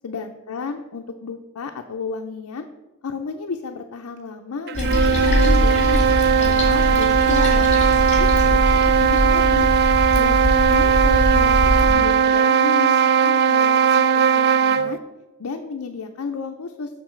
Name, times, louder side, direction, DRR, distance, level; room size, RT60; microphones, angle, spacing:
voice 1, 0.0-2.7 3.0-6.1 6.4-9.7 10.2-15.0 15.4-17.0, left 4 dB, 70° left, 3 dB, 0.5 m, -32 dB
Toilet flush, 4.7-11.9, equal, 30° left, 1.9 m, -22 dB
sound 1, 4.7-15.0, right 7 dB, 45° right, 0.4 m, -18 dB
6.7 x 6.4 x 4.4 m, 1.1 s
head